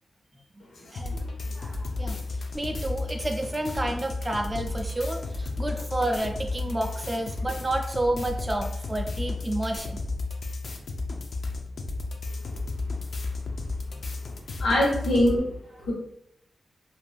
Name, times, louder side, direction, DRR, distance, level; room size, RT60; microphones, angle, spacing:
voice 1, 0.7-1.6 14.6-15.5 15.8-15.9, left 1 dB, 90° left, -3 dB, 1.0 m, -25 dB
sound 1, 0.9-15.4, left 3 dB, 60° left, 0.4 m, -33 dB
voice 2, 1.5-10.0 13.9-14.0, right 1 dB, 20° right, 4 dB, 0.3 m, -30 dB
2.5 x 2.2 x 3.2 m, 0.75 s
wide cardioid pair, 115°, 0 cm